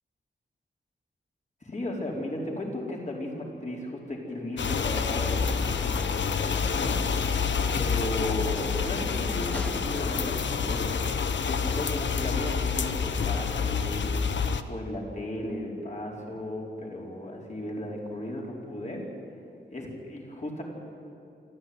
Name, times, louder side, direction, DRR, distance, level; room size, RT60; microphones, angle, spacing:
voice 1, 1.6-7.0 7.7-11.0 11.4-14.2 14.7-19.1 19.7-20.6, left 1 dB, 40° left, -2 dB, 4.7 m, -35 dB
sound 1, 4.6-14.6, left 6 dB, 80° left, 1.0 m, -28 dB
sound 2, 5.1-10.3, left 1 dB, 5° left, 0.5 m, -42 dB
26.5 x 14.0 x 9.7 m, 2.5 s
wide cardioid pair, 135°, 19 cm